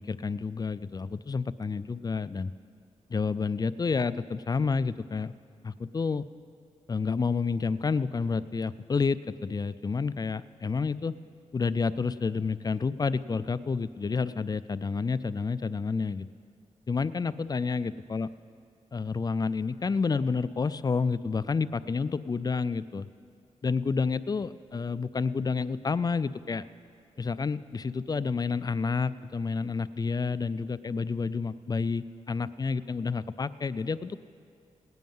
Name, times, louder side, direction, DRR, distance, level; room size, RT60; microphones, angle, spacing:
voice 1, 0.0-2.5 3.1-5.3 5.6-6.3 6.9-11.2 11.5-16.3 16.9-18.3 18.9-23.1 23.6-26.6 27.2-34.2, left 4 dB, 30° left, 16 dB, 0.4 m, -29 dB
18.0 x 9.2 x 5.5 m, 2.4 s
cardioid pair, 75°, 12 cm